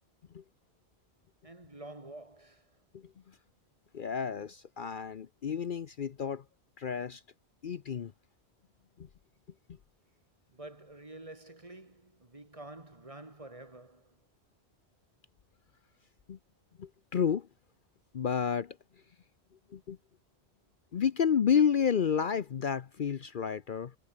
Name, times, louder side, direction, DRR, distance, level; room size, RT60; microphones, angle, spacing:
voice 1, 1.4-2.8 10.5-14.2, right 2 dB, 30° right, 2.2 m, -49 dB
voice 2, 3.9-6.4 6.8-7.2 7.6-8.1 9.0-9.1 16.3-16.4 16.8-17.5 18.1-18.8 19.7-20.0 20.9-23.9, left 7 dB, 55° left, 0.9 m, -30 dB
omnidirectional pair, 1.1 m